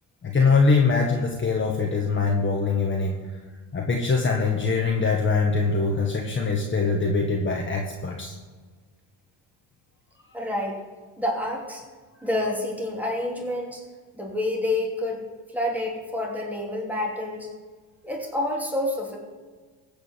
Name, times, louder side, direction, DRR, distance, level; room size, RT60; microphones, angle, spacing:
voice 1, 0.2-3.2 3.7-8.3, left 4 dB, 30° left, 0 dB, 1.6 m, -23 dB
voice 2, 10.3-10.8 11.2-11.8 12.2-13.8 14.1-17.5 18.0-19.2, left 1 dB, 5° right, -1 dB, 3.0 m, -28 dB
15.0 x 5.2 x 7.6 m, 1.4 s
supercardioid pair, 90°, 41 cm